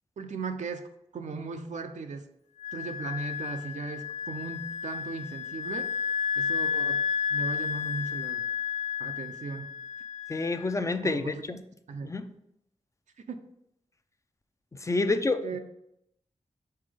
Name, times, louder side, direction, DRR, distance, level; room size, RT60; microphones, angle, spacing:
voice 1, 0.2-0.9 1.1-2.3 2.7-5.9 6.4-7.0 7.3-8.5 9.0-9.7 11.0-11.6 11.9-12.1 13.3-13.4 15.1-15.6, right 4 dB, 85° right, 6 dB, 0.6 m, -37 dB
Wind instrument woodwind instrument, 2.6-10.9, left 6 dB, 80° left, 0.7 m, -32 dB
voice 2, 10.3-11.4 12.0-12.3 14.8-15.4, left 3 dB, 25° left, 9 dB, 0.5 m, -27 dB
5.7 x 3.8 x 5.1 m, 0.80 s
wide cardioid pair, 105°, 12 cm